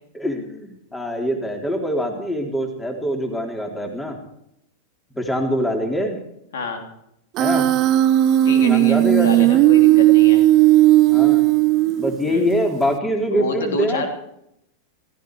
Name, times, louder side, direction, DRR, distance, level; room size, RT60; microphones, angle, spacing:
voice 1, 0.1-4.2 5.1-6.2 7.4-7.7 8.7-9.6 11.1-11.5 12.0-14.1, equal, 10° left, 3 dB, 3.7 m, -24 dB
voice 2, 6.5-6.8 8.4-10.4 12.3-12.4 13.3-14.1, left 2 dB, 75° left, 4 dB, 3.5 m, -28 dB
Human voice, 7.4-12.3, right 15 dB, 45° right, 0.6 m, -15 dB
16.5 x 15.0 x 4.8 m, 0.77 s
hypercardioid pair, 100°, 0 cm